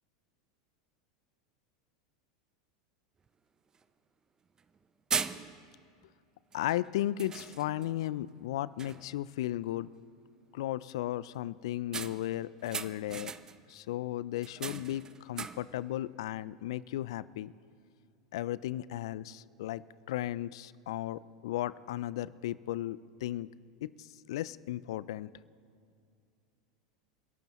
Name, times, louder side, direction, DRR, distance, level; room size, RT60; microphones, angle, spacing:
sound 1, 3.3-3.4 3.7-3.8 4.6-4.8 5.1-5.8 6.5-6.7 7.2-8.0 8.4-8.5 8.8-9.2 11.9-13.7 14.4-15.8, right 6 dB, 25° right, 0.6 m, -38 dB
voice 1, 6.5-9.9 10.5-13.3 13.7-17.5 18.3-23.5 23.8-25.3, left 14 dB, 70° left, 19 dB, 0.4 m, -35 dB
29.0 x 12.0 x 3.1 m, 2.4 s
hypercardioid pair, 90°, 3 cm